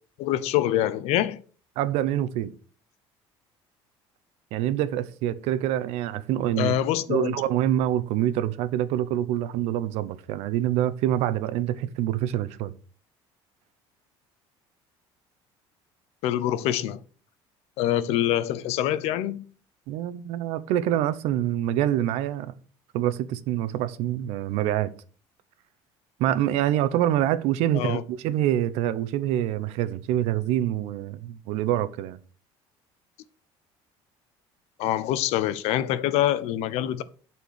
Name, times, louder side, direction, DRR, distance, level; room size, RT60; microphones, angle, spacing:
voice 1, 0.2-1.4 6.6-7.4 16.2-17.0 17.8-19.4 27.7-28.0 34.8-37.0, left 12 dB, 75° left, 0.8 m, -25 dB
voice 2, 1.8-2.5 4.5-6.8 7.1-12.7 19.9-22.5 22.9-24.9 26.2-32.2, right 12 dB, 75° right, 0.9 m, -26 dB
11.5 x 4.6 x 6.5 m
cardioid pair, 120°, 11 cm